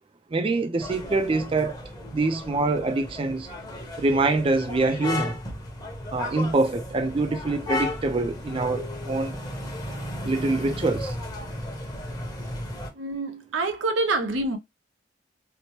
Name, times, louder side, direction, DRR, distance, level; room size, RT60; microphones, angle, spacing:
voice 1, 0.3-1.8 2.1-3.5 4.0-5.4 6.1-9.4 10.2-11.1, right 3 dB, 30° right, 0.4 m, -25 dB
sound 1, 0.8-12.9, left 1 dB, 20° left, 0.8 m, -34 dB
voice 2, 13.0-14.6, right 2 dB, 80° right, 0.6 m, -26 dB
2.9 x 2.0 x 2.9 m
head